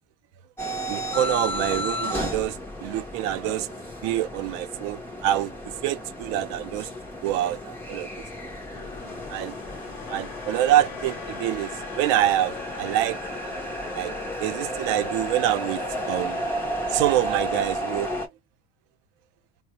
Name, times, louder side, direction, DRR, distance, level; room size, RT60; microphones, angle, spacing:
sound 1, 0.6-18.3, equal, 5° left, 0.4 m, -33 dB
voice 1, 0.9-3.7 4.0-6.9 7.2-8.1 9.3-9.6 10.1-13.6 13.9-14.1 14.4-16.5 16.9-18.1, right 13 dB, 70° right, 0.6 m, -26 dB
sound 2, 8.7-17.6, left 10 dB, 80° left, 0.8 m, -42 dB
3.9 x 2.2 x 2.8 m
cardioid pair, 160°, 44 cm